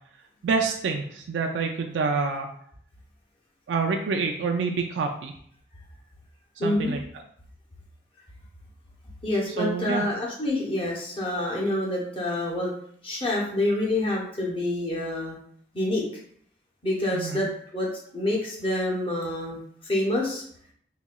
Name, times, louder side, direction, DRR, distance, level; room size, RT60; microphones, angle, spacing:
voice 1, 0.4-2.5 3.7-5.3 6.6-7.0 9.6-10.0 17.1-17.5, right 4 dB, 85° right, 3 dB, 0.3 m, -27 dB
voice 2, 6.6-7.0 9.2-12.7 13.0-15.3 15.7-16.0 16.8-17.5 17.7-17.9 18.1-20.4, left 1 dB, 30° left, -3 dB, 0.8 m, -27 dB
4.0 x 2.8 x 2.2 m, 0.63 s
head